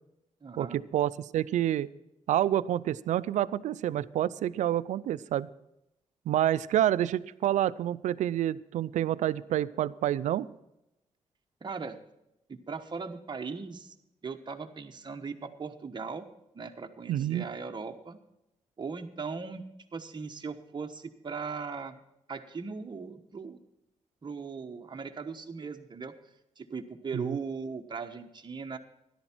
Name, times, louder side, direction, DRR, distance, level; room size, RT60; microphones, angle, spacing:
voice 1, 0.4-0.8 11.6-12.0 12.5-13.9 14.2-16.2 16.5-18.2 18.8-19.6 19.9-22.0 22.3-23.6 24.2-26.1 26.6-28.8, right 5 dB, 40° right, 4 dB, 1.2 m, -38 dB
voice 2, 0.9-1.9 2.3-5.5 6.3-10.5 17.1-17.5 27.1-27.4, right 12 dB, 85° right, 17 dB, 0.4 m, -28 dB
13.0 x 11.0 x 4.5 m, 0.86 s
cardioid pair, 65°, 12 cm